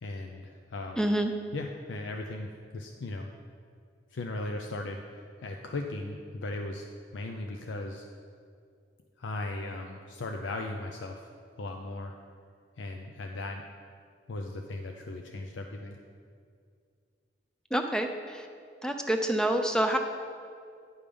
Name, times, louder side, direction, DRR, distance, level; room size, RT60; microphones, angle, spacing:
voice 1, 0.0-1.1 1.5-3.3 4.1-6.9 7.1-8.0 9.2-11.3 11.6-12.1 12.8-13.6 14.3-16.0, left 2 dB, 75° left, 3 dB, 0.5 m, -37 dB
voice 2, 1.0-1.3 17.7-18.5 18.8-20.0, right 1 dB, 5° left, 5 dB, 0.4 m, -27 dB
9.8 x 5.1 x 5.3 m, 2.3 s
head